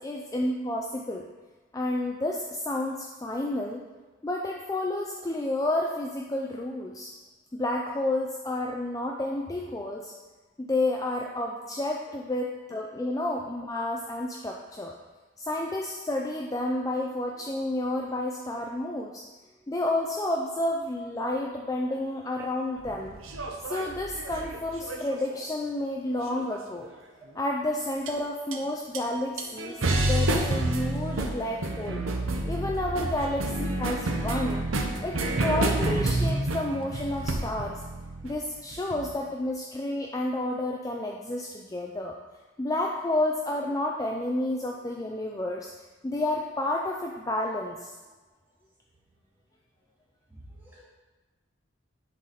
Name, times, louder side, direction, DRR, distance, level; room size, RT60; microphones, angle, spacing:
voice 1, 0.0-1.3 1.7-3.8 4.2-7.1 7.5-10.1 10.6-14.9 15.4-19.2 19.7-23.2 23.7-26.9 27.3-32.0 32.5-34.6 35.0-37.8 38.2-42.2 42.6-45.7 46.0-47.9, left 1 dB, 15° left, 0 dB, 0.4 m, -30 dB
sound 1, 22.9-25.4 26.3-26.9 28.1-28.2 28.5-28.6 28.9-29.0 29.4-39.1, right 2 dB, 90° right, 0.9 m, -29 dB
voice 2, 50.3-50.8, right 1 dB, 10° right, -7 dB, 1.9 m, -44 dB
10.5 x 4.0 x 4.1 m, 1.2 s
head